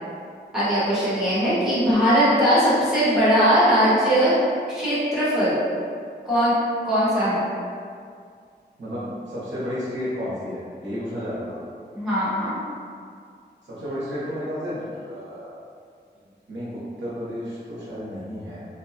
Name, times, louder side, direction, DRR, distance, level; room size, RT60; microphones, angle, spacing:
voice 1, 0.5-4.3 4.7-5.6 6.2-6.5 6.8-7.4 11.9-12.5, equal, ahead, -12 dB, 1.1 m, -20 dB
voice 2, 8.8-11.6 13.7-15.5 16.2-18.7, equal, 90° right, -9 dB, 0.8 m, -32 dB
2.6 x 2.2 x 2.7 m, 2.2 s
wide cardioid pair, 95°, 19 cm